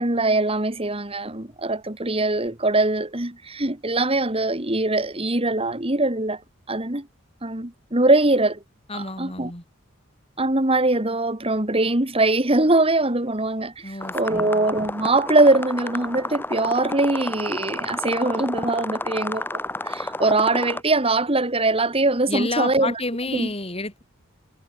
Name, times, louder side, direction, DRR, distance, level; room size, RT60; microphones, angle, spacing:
voice 1, 0.0-6.4 6.7-7.1 7.4-8.6 8.9-9.5 10.4-19.4 19.8-22.9 23.3-23.5, right 2 dB, 30° right, 2.2 m, -22 dB
voice 2, 8.9-9.6 13.8-14.5 22.3-24.0, left 2 dB, 30° left, 6.8 m, -30 dB
sound 1, 14.0-20.8, left 2 dB, 10° left, 5.5 m, -31 dB
head